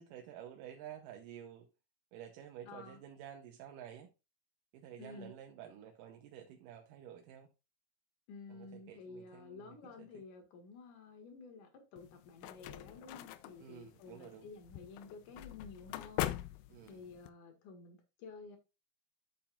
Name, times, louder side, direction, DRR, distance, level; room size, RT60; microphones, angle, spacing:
voice 1, 0.0-1.7 2.1-4.1 4.7-7.5 8.5-10.2 13.6-14.5 16.7-17.1, right 10 dB, 75° right, 2.3 m, -51 dB
voice 2, 2.7-3.0 5.0-5.3 8.3-16.3 16.9-18.6, left 4 dB, 65° left, 3.1 m, -52 dB
sound 1, 12.0-17.3, left 14 dB, 85° left, 2.4 m, -43 dB
8.7 x 8.7 x 2.4 m
omnidirectional pair, 4.1 m